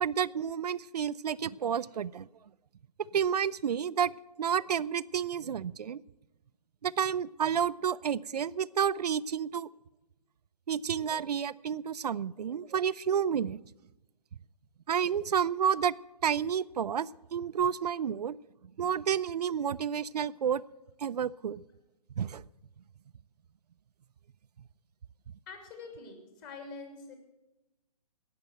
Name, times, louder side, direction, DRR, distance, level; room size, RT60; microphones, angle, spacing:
voice 1, 0.0-2.3 3.1-4.1 4.4-6.0 6.8-9.7 10.7-13.6 14.9-15.9 16.2-18.4 18.8-20.6 21.0-21.6 22.2-22.4, right 8 dB, 80° right, 16 dB, 0.4 m, -30 dB
voice 2, 25.5-27.1, left 4 dB, 30° left, 4 dB, 2.9 m, -45 dB
17.5 x 6.7 x 7.8 m, 0.97 s
hypercardioid pair, 145°, 20 cm